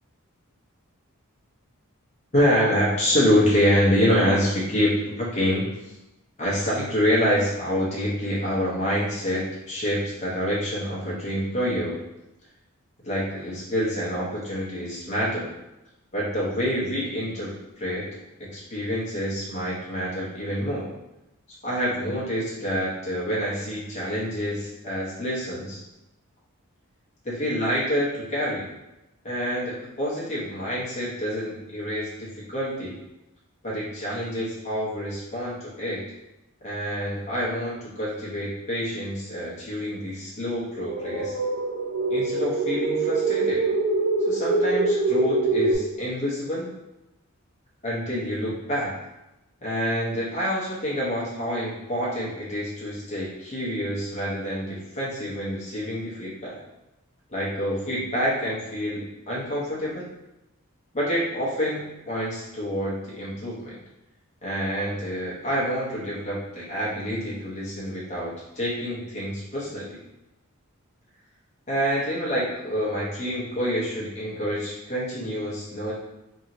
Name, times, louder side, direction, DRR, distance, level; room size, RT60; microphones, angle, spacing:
voice 1, 2.3-5.7 6.4-12.0 13.0-15.5 16.1-18.1 18.4-20.9 21.6-25.8 27.2-28.7 29.2-33.0 33.6-36.1 36.6-41.4 42.1-43.7 44.3-46.7 47.8-48.9 49.6-56.6 57.3-60.0 60.9-63.8 64.4-70.0 71.7-75.9, equal, 30° left, -7 dB, 0.8 m, -27 dB
sound 1, 40.7-45.8, right 3 dB, 45° right, 0.6 m, -24 dB
2.8 x 2.7 x 2.6 m, 0.93 s
head